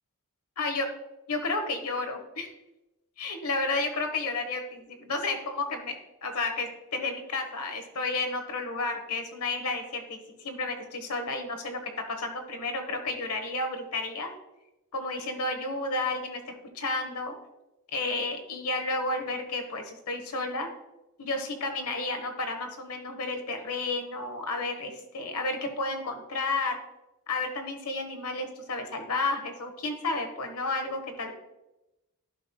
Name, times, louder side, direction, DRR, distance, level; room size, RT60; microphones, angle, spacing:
voice 1, 1.3-2.5 3.2-6.0 6.2-14.3 14.9-17.3 17.9-20.7 21.2-26.8 27.3-31.3, left 3 dB, 80° left, 5 dB, 1.2 m, -32 dB
11.5 x 5.3 x 2.3 m, 0.94 s
head